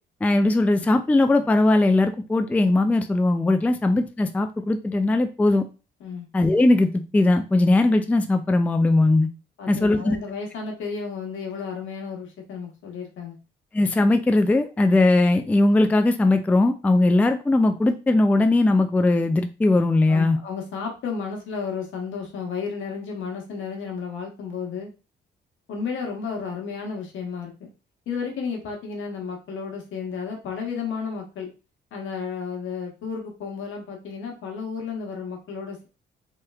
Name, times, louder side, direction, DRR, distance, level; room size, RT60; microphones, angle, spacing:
voice 1, 0.2-5.6 6.3-9.3 9.7-10.2 13.7-20.4, left 2 dB, 5° left, 8 dB, 0.3 m, -19 dB
voice 2, 9.6-13.4 20.1-24.9 25.7-27.7 28.1-31.5 31.9-35.9, left 5 dB, 80° left, 1 dB, 1.1 m, -32 dB
3.1 x 3.0 x 2.3 m, 0.31 s
cardioid pair, 90°, 20 cm